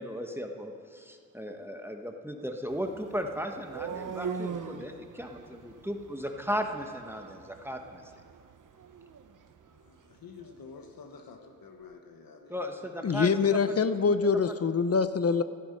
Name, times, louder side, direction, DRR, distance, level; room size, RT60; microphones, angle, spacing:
voice 1, 0.0-8.0 12.5-13.6 14.2-14.3, equal, 5° right, 4 dB, 1.2 m, -36 dB
sound 1, 2.7-10.6, right 6 dB, 65° right, 0.9 m, -42 dB
voice 2, 9.7-12.9 13.3-14.1, left 5 dB, 85° left, 4 dB, 1.3 m, -50 dB
voice 3, 13.0-15.4, left 5 dB, 45° left, 12 dB, 0.6 m, -25 dB
15.0 x 13.0 x 5.3 m, 2.3 s
cardioid pair, 65°, 34 cm